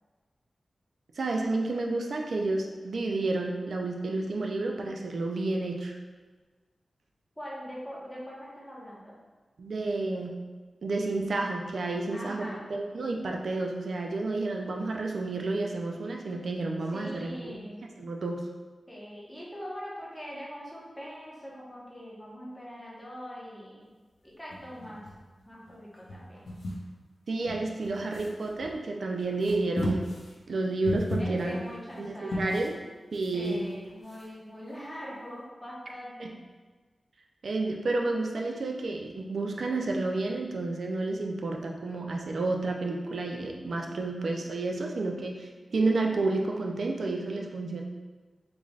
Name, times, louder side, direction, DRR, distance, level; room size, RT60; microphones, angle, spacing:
voice 1, 1.2-6.0 9.6-10.4 10.8-17.6 18.0-18.5 27.3-30.1 30.5-31.6 32.0-32.8 33.1-33.7 36.2-36.3 37.4-47.8, right 2 dB, 80° right, 1 dB, 0.4 m, -30 dB
voice 2, 7.4-9.2 12.1-12.7 16.9-17.9 18.9-23.9 24.2-25.0 25.5-26.5 31.2-32.6 33.3-36.4, equal, 5° left, -6 dB, 1.0 m, -42 dB
sound 1, 24.5-25.7 26.0-26.9 27.4-28.7 29.2-32.8 33.1-34.3, equal, 80° left, 0.5 m, -35 dB
3.7 x 3.2 x 2.4 m, 1.3 s
wide cardioid pair, 80°, 0 cm